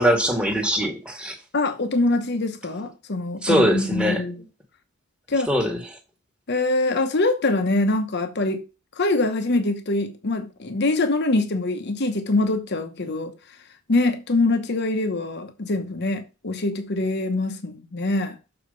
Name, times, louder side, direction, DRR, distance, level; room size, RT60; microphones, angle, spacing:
voice 1, 0.0-1.3 3.4-4.2 5.5-5.8, equal, 5° right, 1.4 m, -21 dB
voice 2, 1.5-4.4 5.3-5.5 6.5-8.6 9.0-13.3 13.9-18.4, left 2 dB, 55° left, 0.9 m, -24 dB
6.9 x 4.3 x 5.2 m
head